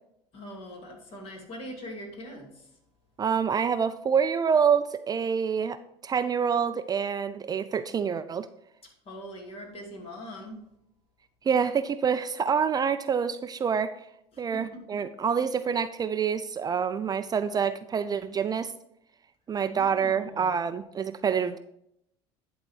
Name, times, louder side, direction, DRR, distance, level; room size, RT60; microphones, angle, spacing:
voice 1, 0.3-2.6 9.1-10.6 14.5-15.0 19.7-20.5, equal, 45° left, 1 dB, 2.6 m, -42 dB
voice 2, 3.2-8.5 11.4-13.9 14.4-18.7 19.5-21.6, right 7 dB, 30° right, 11 dB, 0.4 m, -27 dB
10.5 x 3.9 x 4.8 m, 0.76 s
supercardioid pair, 85°, 13 cm